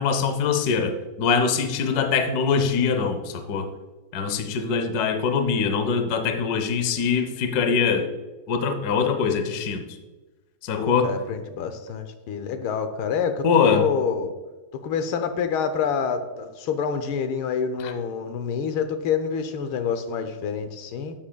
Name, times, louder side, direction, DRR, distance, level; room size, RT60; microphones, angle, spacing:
voice 1, 0.0-3.7 4.1-8.1 8.5-9.8 10.6-11.1 13.4-13.9 17.8-17.9, left 5 dB, 60° left, 7 dB, 1.2 m, -23 dB
voice 2, 10.8-14.3 14.8-21.1, left 6 dB, 85° left, 8 dB, 1.6 m, -27 dB
11.0 x 7.5 x 2.2 m, 1.2 s
omnidirectional pair, 2.2 m